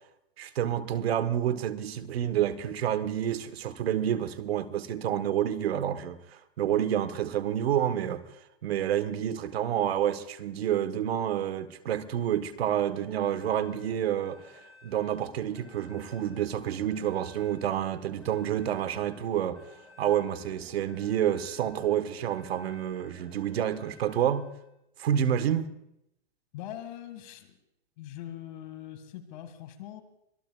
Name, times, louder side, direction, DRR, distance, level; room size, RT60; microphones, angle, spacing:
voice 1, 0.4-8.2 8.6-14.4 14.8-19.6 20.0-24.5 25.0-25.7, right 10 dB, 80° right, 1.3 m, -29 dB
sound 1, 12.6-24.7, left 2 dB, ahead, 4.2 m, -54 dB
voice 2, 26.5-27.6 28.0-30.0, left 11 dB, 45° left, 2.0 m, -42 dB
25.0 x 20.0 x 2.4 m
supercardioid pair, 160°, 31 cm